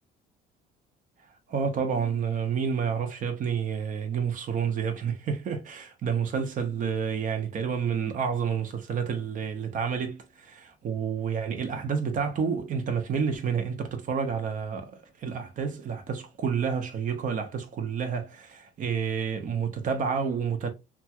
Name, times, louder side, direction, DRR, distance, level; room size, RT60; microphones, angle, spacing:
voice 1, 1.5-20.7, right 6 dB, 50° right, 0.8 m, -29 dB
2.9 x 2.3 x 2.8 m
cardioid pair, 110°, 17 cm